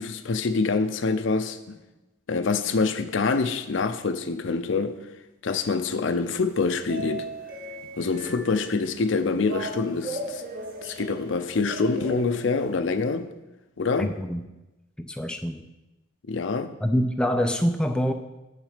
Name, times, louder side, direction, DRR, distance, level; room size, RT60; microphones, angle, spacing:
voice 1, 0.0-1.8 2.3-5.0 5.4-7.3 8.0-10.4 10.8-13.3 13.8-14.2 16.3-16.7, left 4 dB, 65° left, 0.5 m, -26 dB
sound 1, 5.8-12.8, right 1 dB, 45° right, 1.0 m, -38 dB
voice 2, 14.0-14.4 15.0-15.7 16.8-18.1, equal, 5° left, 0.3 m, -25 dB
7.4 x 6.4 x 5.0 m
head